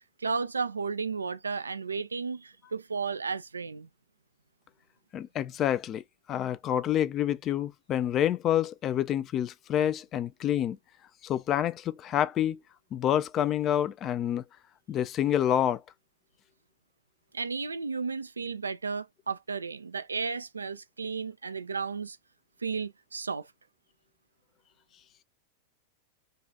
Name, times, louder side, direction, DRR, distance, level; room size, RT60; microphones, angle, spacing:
voice 1, 0.2-3.9 17.3-22.2 22.6-23.5, right 5 dB, 75° right, 0.3 m, -33 dB
voice 2, 5.1-10.8 11.2-12.6 12.9-14.4 14.9-15.8, left 10 dB, 30° left, 0.4 m, -28 dB
5.3 x 2.4 x 2.3 m
figure-of-eight pair, 90°, 0 cm